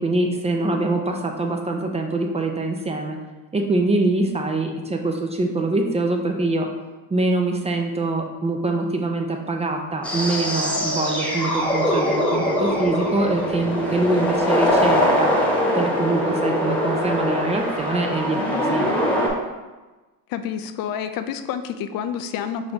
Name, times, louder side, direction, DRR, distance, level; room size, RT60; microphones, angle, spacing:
voice 1, 0.0-3.2 3.5-6.7 7.1-15.4 15.7-18.9, right 2 dB, 15° right, 3 dB, 0.4 m, -24 dB
sound 1, 10.0-19.3, equal, 5° left, 1.1 m, -22 dB
voice 2, 20.3-22.7, left 8 dB, 50° left, 9 dB, 0.5 m, -29 dB
4.0 x 3.3 x 3.8 m, 1.2 s
supercardioid pair, 90°, 47 cm